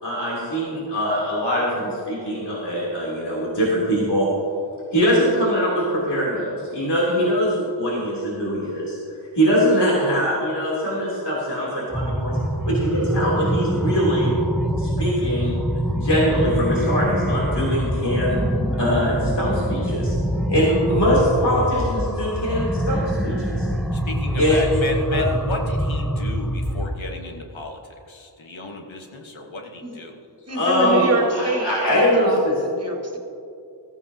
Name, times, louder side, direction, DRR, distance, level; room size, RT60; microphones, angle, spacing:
voice 1, 0.0-4.3 4.9-9.0 9.3-12.4 12.7-14.3 14.8-18.4 18.8-20.1 20.5-23.7 24.4-25.2 30.5-32.6, equal, 60° left, -6 dB, 3.3 m, -22 dB
sound 1, 11.9-26.9, equal, ahead, 1.0 m, -25 dB
voice 2, 23.9-27.8 28.1-30.2, left 2 dB, 85° left, 2 dB, 1.5 m, -34 dB
voice 3, 30.5-32.4 32.7-33.2, right 2 dB, 35° right, 0 dB, 1.9 m, -25 dB
15.0 x 14.0 x 2.8 m, 2.5 s
wide cardioid pair, 55°, 46 cm